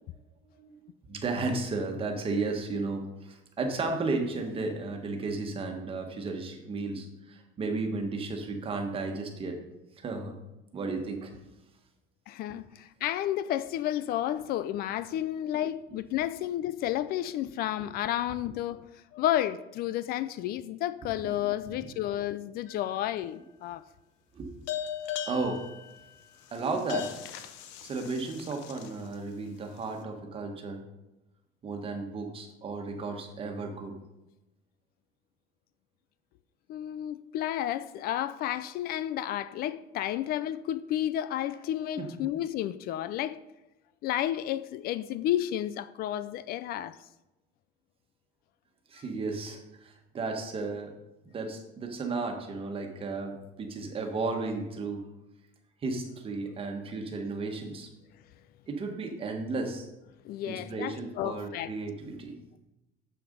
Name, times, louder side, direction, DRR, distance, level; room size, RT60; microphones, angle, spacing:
voice 1, 0.6-9.6 10.0-10.4 10.7-11.4 21.4-21.5 21.8-21.9 24.3-24.5 25.3-25.6 26.5-27.1 27.8-30.8 31.6-34.0 42.0-42.1 48.9-50.9 51.3-55.0 55.8-57.9 58.7-59.9 60.4-62.4, right 3 dB, 30° right, 1.5 m, -34 dB
voice 2, 12.3-18.8 19.1-23.8 36.7-43.4 44.0-47.0 60.2-61.7, left 12 dB, 55° left, 0.4 m, -31 dB
sound 1, 22.7-23.3 24.7-29.1, left 10 dB, 80° left, 0.9 m, -38 dB
7.3 x 6.8 x 5.3 m
cardioid pair, 145°, 19 cm